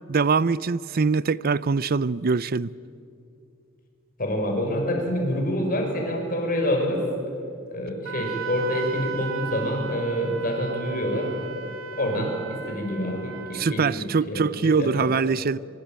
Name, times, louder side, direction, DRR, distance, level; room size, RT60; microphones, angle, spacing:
voice 1, 0.1-2.7 12.2-12.3 13.5-15.6, right 4 dB, 45° right, 0.5 m, -23 dB
voice 2, 4.2-7.0 7.7-11.3 11.6-11.7 12.0-15.1, equal, 45° left, 6.0 m, -27 dB
Wind instrument woodwind instrument, 8.1-13.8, right 7 dB, 70° right, 2.6 m, -36 dB
25.0 x 24.0 x 9.1 m
head